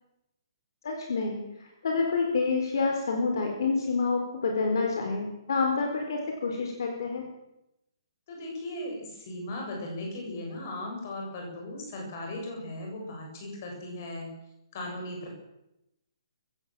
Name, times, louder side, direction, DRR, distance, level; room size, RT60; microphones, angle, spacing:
voice 1, 0.8-1.4 1.8-7.2, left 4 dB, 50° left, 2 dB, 4.3 m, -28 dB
voice 2, 8.3-14.3 14.7-15.3, left 1 dB, 30° left, 1 dB, 7.3 m, -37 dB
23.0 x 16.0 x 7.7 m, 0.88 s
hypercardioid pair, 180°, 3 cm